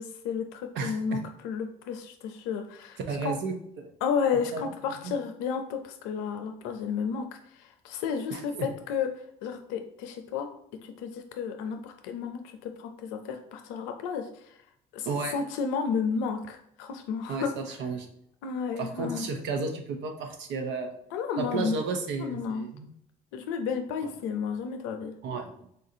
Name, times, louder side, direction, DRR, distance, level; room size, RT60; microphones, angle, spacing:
voice 1, 0.0-3.4 4.0-7.3 7.5-9.1 9.4-10.5 10.8-14.5 14.9-15.1 15.3-17.8 18.4-19.3 21.1-21.8 22.2-22.6 23.3-25.1, left 6 dB, 75° left, 6 dB, 0.5 m, -32 dB
voice 2, 0.7-1.2 3.1-3.9 4.5-4.6 5.0-5.1 8.3-8.7 15.1-15.4 17.3-18.1 18.8-20.9 21.4-22.9 25.2-25.7, right 4 dB, 65° right, 5 dB, 0.7 m, -33 dB
3.8 x 2.5 x 2.7 m, 0.73 s
hypercardioid pair, 65°, 20 cm